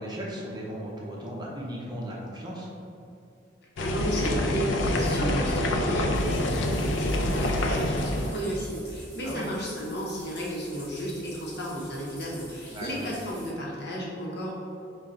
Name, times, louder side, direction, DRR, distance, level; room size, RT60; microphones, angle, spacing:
voice 1, 0.0-2.7 9.2-9.5 12.7-13.1, equal, 25° right, -4 dB, 0.7 m, -36 dB
sound 1, 3.8-8.4, left 1 dB, 80° left, 0.4 m, -26 dB
voice 2, 3.8-14.5, right 1 dB, 60° left, -4 dB, 1.0 m, -33 dB
sound 2, 6.1-13.5, equal, 10° left, 1.1 m, -47 dB
5.5 x 2.4 x 3.7 m, 2.6 s
head